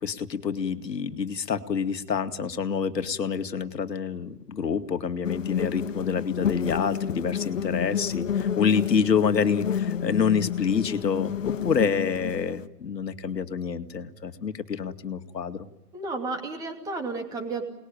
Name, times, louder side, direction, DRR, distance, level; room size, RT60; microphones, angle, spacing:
voice 1, 0.0-15.7, left 6 dB, 90° left, 8 dB, 2.4 m, -27 dB
sound 1, 5.2-12.7, left 8 dB, 50° left, 1.3 m, -30 dB
voice 2, 15.9-17.6, right 3 dB, 5° right, 3 dB, 2.6 m, -32 dB
29.5 x 20.5 x 9.1 m, 1.1 s
hypercardioid pair, 170°, 48 cm